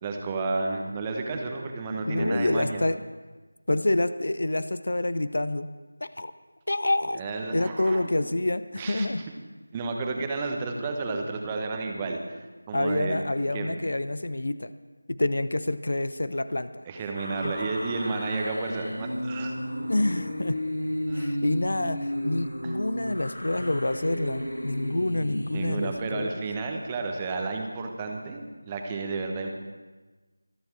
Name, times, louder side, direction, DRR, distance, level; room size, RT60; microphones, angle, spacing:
voice 1, 0.0-2.8 7.2-8.1 8.8-9.1 9.7-13.2 13.5-13.8 16.9-19.5 21.1-21.4 22.6-22.7 25.5-29.5, right 3 dB, 15° right, 3 dB, 1.1 m, -32 dB
voice 2, 2.0-3.0 3.7-5.7 6.0-6.3 6.7-7.2 7.5-9.2 12.7-14.7 15.1-16.8 17.4-17.5 19.9-20.6 21.1-26.4, left 2 dB, 55° left, 14 dB, 0.6 m, -27 dB
sound 1, 17.1-26.0, equal, 75° left, 5.1 m, -33 dB
25.0 x 9.4 x 4.6 m, 1.3 s
figure-of-eight pair, 165°, 0 cm